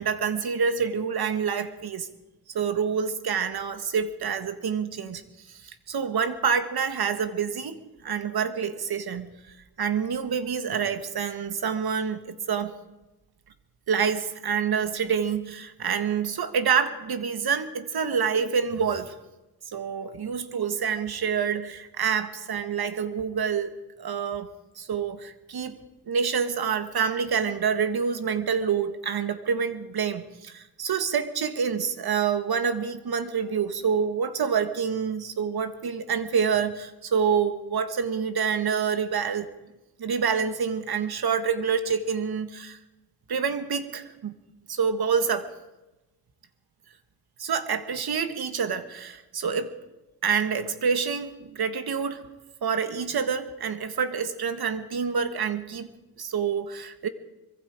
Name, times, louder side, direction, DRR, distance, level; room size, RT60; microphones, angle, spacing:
voice 1, 0.0-2.1 2.5-5.2 5.5-9.3 9.8-12.7 13.9-19.1 19.7-24.5 24.8-25.8 26.1-39.5 40.0-42.8 43.3-44.3 44.7-45.5 47.4-49.7 50.2-52.3 52.6-55.9 56.2-57.1, right 6 dB, 85° right, 9 dB, 1.7 m, -27 dB
24.5 x 22.0 x 5.0 m, 1.0 s
wide cardioid pair, 145°, 37 cm